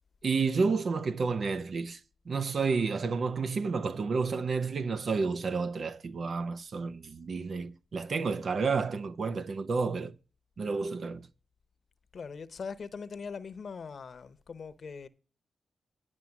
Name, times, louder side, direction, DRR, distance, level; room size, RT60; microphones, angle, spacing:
voice 1, 0.2-2.0 2.3-10.1 10.6-11.3, right 4 dB, 60° right, 0.7 m, -30 dB
voice 2, 12.1-15.1, left 5 dB, 60° left, 0.9 m, -41 dB
11.0 x 6.0 x 6.0 m
cardioid pair, 70°, 0 cm